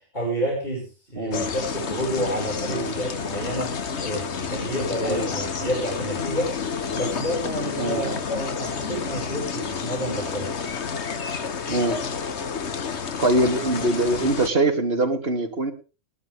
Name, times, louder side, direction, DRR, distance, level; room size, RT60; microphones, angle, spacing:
voice 1, 0.1-0.8 1.1-3.7 4.0-6.5 7.0-10.5, equal, 35° left, -2 dB, 6.5 m, -29 dB
sound 1, 1.3-14.5, left 5 dB, 55° left, 1.5 m, -30 dB
voice 2, 11.7-12.0 13.2-15.7, right 2 dB, 45° right, 4 dB, 3.2 m, -23 dB
21.0 x 12.0 x 3.6 m, 0.33 s
omnidirectional pair, 1.4 m